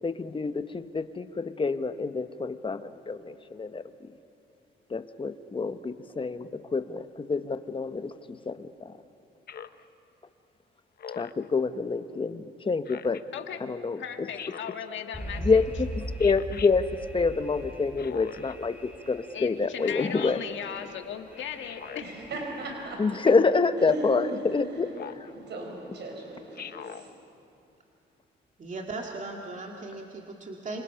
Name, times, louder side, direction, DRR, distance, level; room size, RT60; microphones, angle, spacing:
voice 1, 0.0-4.1 4.9-8.9 11.2-13.3 13.6-14.3 15.4-20.4 23.0-24.9, left 4 dB, 25° left, 10 dB, 1.0 m, -27 dB
Speech synthesizer, 9.5-9.8 11.0-11.5 12.9-13.2 14.4-14.8 16.2-16.7 18.0-18.5 19.8-20.4 21.6-22.0 23.3-23.6 24.9-25.3 26.6-27.0, left 8 dB, 50° left, 0.9 m, -41 dB
voice 2, 13.3-13.7 14.0-15.6 19.3-22.3, left 8 dB, 70° left, 6 dB, 1.7 m, -38 dB
Alarm, 15.1-22.8, equal, 10° right, 5.9 m, -40 dB
Laughter, 21.8-27.1, right 2 dB, 60° right, 4.9 m, -38 dB
voice 3, 28.6-30.8, right 3 dB, 40° right, 0 dB, 2.2 m, -37 dB
27.0 x 25.5 x 5.8 m, 2.8 s
cardioid pair, 90°, 20 cm